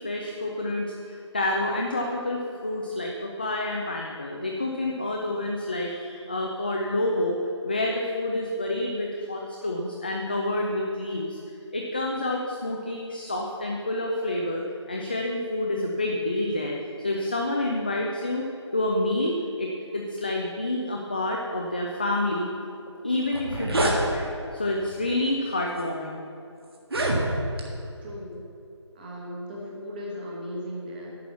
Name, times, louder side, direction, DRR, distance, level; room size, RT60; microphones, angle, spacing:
voice 1, 0.0-11.4 11.7-22.5 23.0-24.3 24.5-26.2, left 1 dB, 20° left, 0 dB, 0.4 m, -28 dB
sound 1, 22.9-23.0 23.2-24.0 24.9-25.1 25.8-25.9 26.7-27.7, right 1 dB, 55° right, 1.7 m, -26 dB
voice 2, 28.0-28.4 28.9-31.1, equal, 20° right, -4 dB, 1.2 m, -37 dB
10.5 x 5.9 x 7.0 m, 2.6 s
figure-of-eight pair, 165°, 15 cm